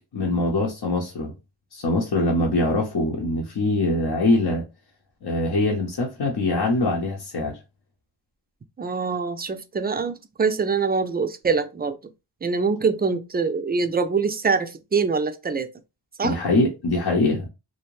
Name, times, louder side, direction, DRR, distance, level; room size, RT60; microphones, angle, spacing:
voice 1, 0.1-1.3 1.7-4.6 5.2-7.6 16.2-17.5, left 2 dB, 60° left, 0.8 m, -23 dB
voice 2, 8.8-12.0 12.4-15.7 16.2-16.4, right 5 dB, 25° right, 0.4 m, -24 dB
2.6 x 2.1 x 3.0 m
cardioid pair, 55°, 45 cm